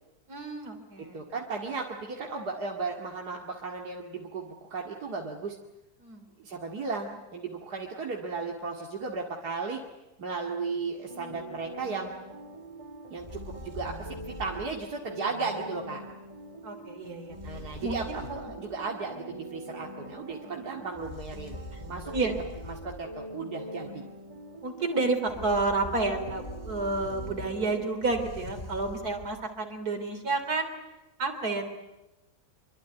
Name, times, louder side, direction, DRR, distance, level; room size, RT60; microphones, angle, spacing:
voice 1, 0.3-1.2 6.0-6.3 16.6-18.2 18.5-18.6 20.5-20.8 22.1-22.4 24.6-30.7 31.2-31.6, right 3 dB, 75° right, 6 dB, 4.0 m, -30 dB
voice 2, 1.1-5.6 6.4-9.8 10.2-12.1 13.1-16.0 17.4-21.6 21.9-22.3 22.7-24.0, right 4 dB, 90° right, 0 dB, 2.8 m, -35 dB
sound 1, 11.1-27.9, right 1 dB, 20° right, 2.2 m, -44 dB
sound 2, 13.2-14.9 17.3-18.6 20.9-23.1 25.3-29.4, left 1 dB, 30° left, 5.8 m, -43 dB
25.5 x 24.5 x 9.3 m, 0.95 s
omnidirectional pair, 1.6 m